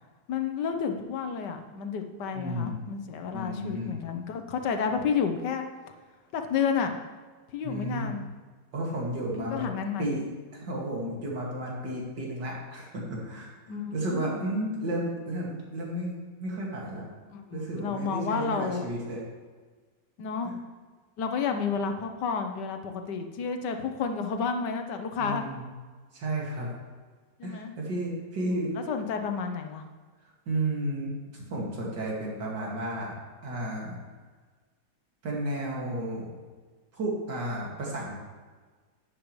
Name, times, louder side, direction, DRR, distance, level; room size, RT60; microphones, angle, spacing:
voice 1, 0.3-5.7 6.3-6.9 7.5-8.2 9.4-10.1 13.7-14.5 17.3-18.8 20.2-20.5 21.2-25.4 27.4-27.7 28.5-29.8, left 6 dB, 75° left, 6 dB, 1.5 m, -31 dB
voice 2, 2.3-2.8 3.3-4.0 7.6-8.1 8.7-9.7 10.0-10.2 10.5-13.5 13.9-16.1 16.4-17.0 17.5-19.2 25.2-25.7 26.1-26.7 27.4-28.7 30.5-33.1 33.4-34.0 35.2-36.3 36.9-38.2, right 1 dB, 75° right, -3 dB, 2.9 m, -32 dB
11.5 x 9.7 x 3.2 m, 1.4 s
omnidirectional pair, 1.9 m